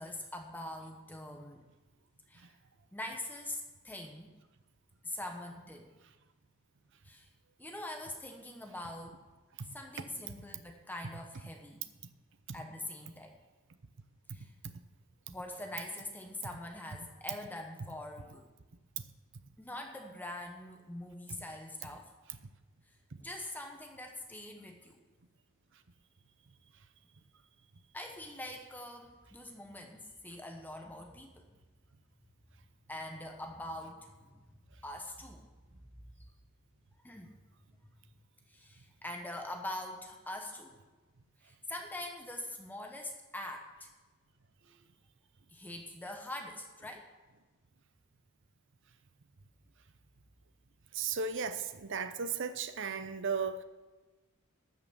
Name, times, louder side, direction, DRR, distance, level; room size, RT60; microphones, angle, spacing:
voice 1, 0.0-1.6 2.3-2.6 2.9-4.4 5.0-5.9 7.0-7.3 7.6-9.2 9.7-11.8 12.5-13.4 14.3-14.5 15.3-18.5 19.6-22.1 22.9-25.0 27.9-31.6 32.9-34.5 34.8-35.4 35.9-36.3 37.0-37.3 38.5-40.8 41.4-43.9 45.5-47.1, left 1 dB, 10° left, 1.0 m, -44 dB
voice 2, 50.9-53.6, right 5 dB, 55° right, 0.7 m, -35 dB
13.0 x 5.9 x 7.0 m
head